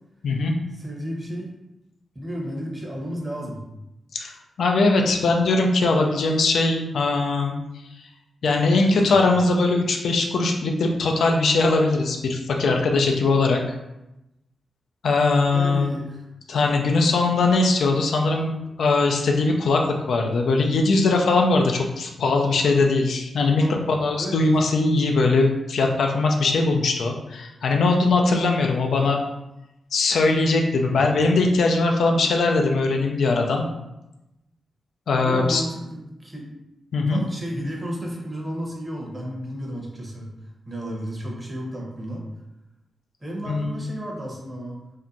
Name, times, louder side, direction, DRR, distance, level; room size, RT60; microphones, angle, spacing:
voice 1, 0.7-1.5 2.1-3.6 9.0-9.1 15.5-16.2 23.6-23.8 24.2-24.4 30.8-31.0 35.2-36.5 37.1-40.3 40.7-42.2 43.2-44.8, equal, 30° right, -1 dB, 0.9 m, -33 dB
voice 2, 4.6-7.6 8.4-13.8 15.0-16.0 16.5-29.2 29.9-33.7 35.1-35.6 36.9-37.2 43.5-43.8, left 3 dB, 75° left, 2 dB, 0.3 m, -20 dB
2.7 x 2.1 x 2.5 m, 0.92 s
supercardioid pair, 45°, 0 cm